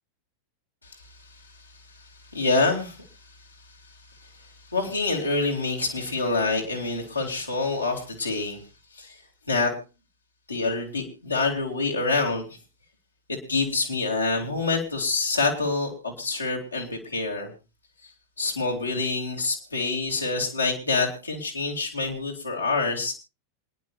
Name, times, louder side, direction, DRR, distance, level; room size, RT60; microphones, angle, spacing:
voice 1, 2.3-3.0 4.7-8.6 8.9-9.2 9.5-9.7 10.5-12.5 13.5-17.5 18.0-18.1 18.4-23.1, left 3 dB, 85° left, -2 dB, 2.8 m, -26 dB
28.0 x 10.5 x 2.6 m, 0.31 s
figure-of-eight pair, 90°, 0 cm